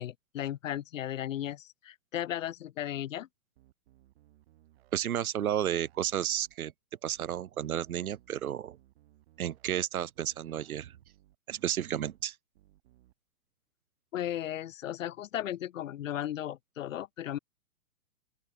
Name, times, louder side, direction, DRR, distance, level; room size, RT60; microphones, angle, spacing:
voice 1, 0.0-3.3 14.1-17.4, left 12 dB, 65° left, 1.0 m, -35 dB
sound 1, 3.6-5.0 5.3-6.6 7.1-7.4 7.7-9.8 10.1-11.4 11.9-12.2 12.5-13.1, right 16 dB, 45° right, 5.0 m, -63 dB
voice 2, 4.9-6.7 7.0-8.8 9.4-10.9 11.5-12.3, right 10 dB, 75° right, 1.2 m, -32 dB
open air
hypercardioid pair, 155°, 43 cm